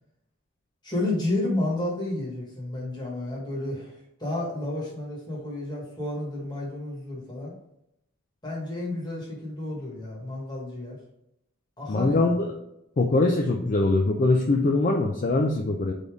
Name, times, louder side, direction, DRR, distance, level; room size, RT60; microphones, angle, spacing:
voice 1, 0.8-7.5 8.4-11.0 11.8-12.4, left 1 dB, 20° left, -4 dB, 1.3 m, -31 dB
voice 2, 11.9-12.5 13.0-15.9, left 2 dB, 35° left, 1 dB, 0.4 m, -22 dB
3.9 x 3.5 x 3.5 m, 0.81 s
head